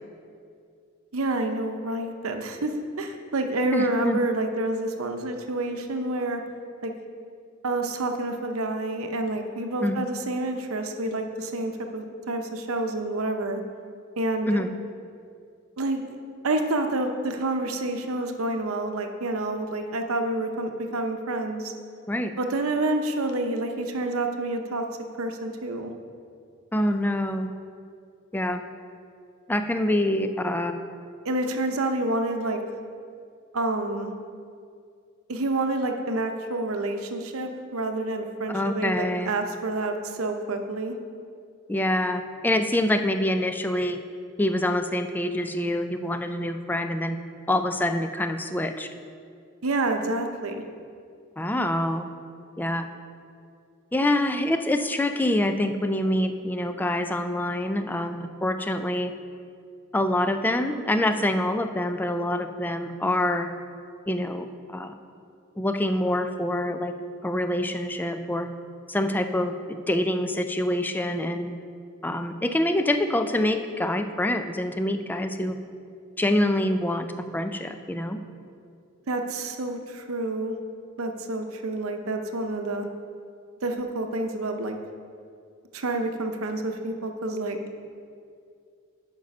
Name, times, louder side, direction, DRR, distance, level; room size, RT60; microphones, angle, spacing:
voice 1, 1.1-6.4 6.8-6.9 7.6-13.6 14.2-14.6 15.8-16.0 16.4-21.7 22.4-24.8 25.2-25.9 31.2-32.6 33.5-34.1 35.3-41.0 49.6-50.6 79.1-80.6 81.0-82.9 83.6-84.8 85.7-87.6, right 2 dB, 85° right, 5 dB, 0.7 m, -28 dB
voice 2, 3.7-4.2 9.8-10.0 14.5-14.7 22.1-22.3 26.7-27.5 28.3-28.6 29.5-30.7 38.5-39.3 41.7-44.0 44.4-47.2 47.5-48.9 51.4-52.1 52.6-52.9 53.9-59.1 59.9-63.5 64.1-64.9 65.6-66.9 67.2-68.5 68.9-71.5 72.0-75.6 76.2-77.1 77.3-78.2, left 1 dB, 10° left, 8 dB, 0.4 m, -26 dB
9.0 x 5.3 x 5.3 m, 2.3 s
head